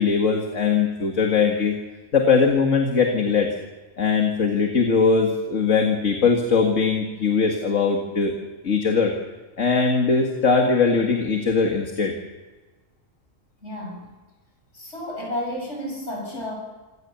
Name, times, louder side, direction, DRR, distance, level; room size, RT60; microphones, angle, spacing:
voice 1, 0.0-1.7 2.1-3.5 4.0-8.3 8.6-9.1 9.6-12.2, left 5 dB, 75° left, 2 dB, 2.3 m, -20 dB
voice 2, 13.6-14.1 14.7-16.6, left 1 dB, 60° left, 1 dB, 7.9 m, -31 dB
26.0 x 16.5 x 7.0 m, 1.3 s
omnidirectional pair, 1.3 m